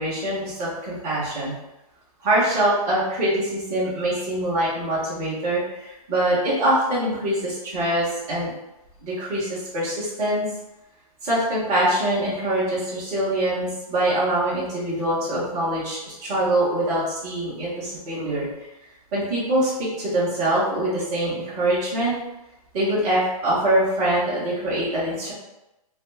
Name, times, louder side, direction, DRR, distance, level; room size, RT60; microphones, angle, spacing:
voice 1, 0.0-1.5 2.2-8.5 9.0-10.5 11.2-18.5 19.1-22.1 22.7-25.3, right 1 dB, 15° right, -10 dB, 0.8 m, -24 dB
3.2 x 2.3 x 3.1 m, 0.95 s
hypercardioid pair, 180°, 19 cm